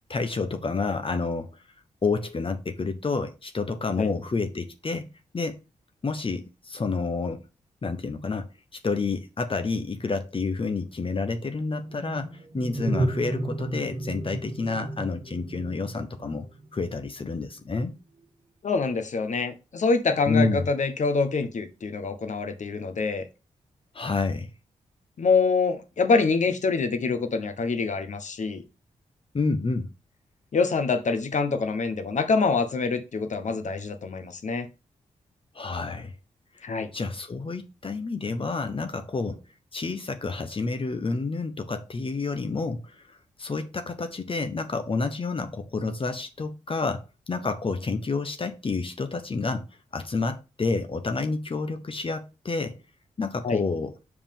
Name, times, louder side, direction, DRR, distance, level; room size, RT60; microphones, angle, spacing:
voice 1, 0.1-1.6 2.0-5.1 5.3-5.6 6.0-7.5 7.8-8.5 8.8-16.5 16.7-17.9 20.3-20.7 23.9-24.5 29.3-29.9 35.5-36.1 36.5-36.7 36.9-39.4 39.7-49.7 49.9-52.8 53.2-53.9, left 4 dB, 40° left, 0.9 m, -29 dB
sound 1, 11.7-17.1, right 1 dB, 40° right, 1.4 m, -32 dB
voice 2, 18.6-23.3 25.2-28.6 30.5-34.7 36.6-36.9 53.4-53.6, left 4 dB, 60° left, 1.2 m, -25 dB
5.4 x 4.9 x 5.3 m
supercardioid pair, 50°, 14 cm